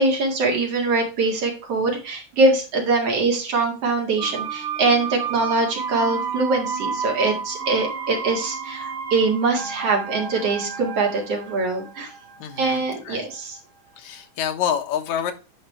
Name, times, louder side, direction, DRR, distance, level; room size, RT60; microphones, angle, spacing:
voice 1, 0.0-12.1 12.6-13.6, right 3 dB, 55° right, 1 dB, 2.8 m, -23 dB
sound 1, 4.2-13.9 14.2-14.3, right 6 dB, 80° right, 2.5 m, -32 dB
voice 2, 12.4-13.3 14.0-15.3, left 8 dB, 70° left, 6 dB, 2.3 m, -27 dB
10.0 x 4.8 x 3.3 m, 0.31 s
omnidirectional pair, 3.6 m